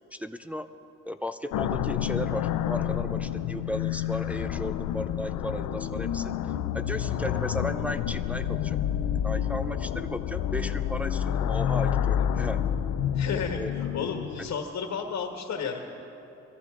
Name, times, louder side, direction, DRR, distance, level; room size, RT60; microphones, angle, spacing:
voice 1, 0.1-0.7 1.1-8.8 9.2-12.7 13.6-13.7 14.4-14.5, equal, 5° right, 8 dB, 0.5 m, -35 dB
sound 1, 1.5-14.6, left 10 dB, 85° left, 0.6 m, -29 dB
voice 2, 13.1-15.8, left 6 dB, 60° left, 2 dB, 1.5 m, -32 dB
22.0 x 14.5 x 3.8 m, 2.9 s
cardioid pair, 90°, 30 cm